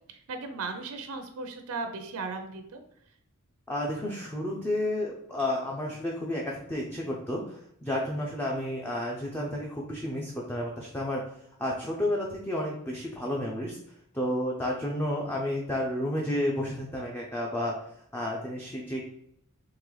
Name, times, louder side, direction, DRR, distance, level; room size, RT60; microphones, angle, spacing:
voice 1, 0.1-2.8, right 3 dB, 80° right, 7 dB, 0.5 m, -36 dB
voice 2, 3.7-11.2 11.6-13.8 14.1-17.7 18.1-19.1, left 1 dB, 10° left, -2 dB, 0.4 m, -31 dB
3.8 x 3.0 x 3.1 m, 0.73 s
head